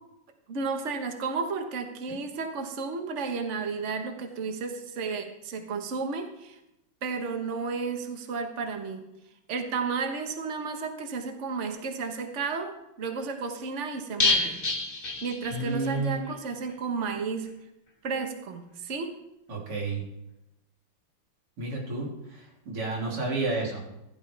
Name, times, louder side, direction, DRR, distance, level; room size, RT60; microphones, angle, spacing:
voice 1, 0.5-6.6 7.0-9.0 9.5-14.6 15.0-17.5 18.0-19.1, right 4 dB, 40° right, 5 dB, 1.3 m, -33 dB
sound 1, 14.2-16.0 16.3-16.4 16.7-16.8, left 3 dB, 25° left, 1.5 m, -28 dB
voice 2, 15.5-16.4 19.5-20.0 21.6-23.8, right 3 dB, 90° right, -3 dB, 4.2 m, -31 dB
15.5 x 12.5 x 3.4 m, 0.88 s
omnidirectional pair, 2.4 m